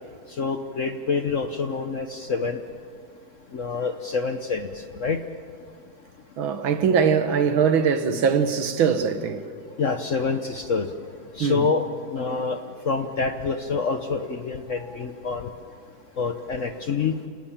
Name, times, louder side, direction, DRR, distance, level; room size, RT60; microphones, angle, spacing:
voice 1, 0.4-2.6 3.5-4.7 5.0-5.2 9.8-10.9 11.4-11.8 12.1-12.6 12.8-15.5 16.2-17.1, left 5 dB, 50° left, 0.9 m, -26 dB
voice 2, 6.4-9.5 11.4-11.7, right 6 dB, 75° right, 2.1 m, -22 dB
29.5 x 18.5 x 7.3 m
omnidirectional pair, 2.2 m